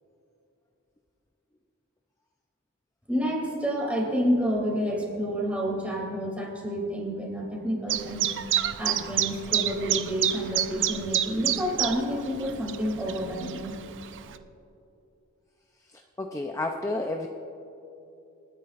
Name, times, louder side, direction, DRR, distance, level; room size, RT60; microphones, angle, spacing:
voice 1, 3.1-8.3 8.8-13.7, equal, 5° right, -2 dB, 2.9 m, -29 dB
Chirp tweet, 7.9-14.4, right 11 dB, 55° right, 0.5 m, -29 dB
voice 2, 15.9-17.3, left 2 dB, 15° left, 3 dB, 0.5 m, -31 dB
27.5 x 9.9 x 2.5 m, 2.8 s
head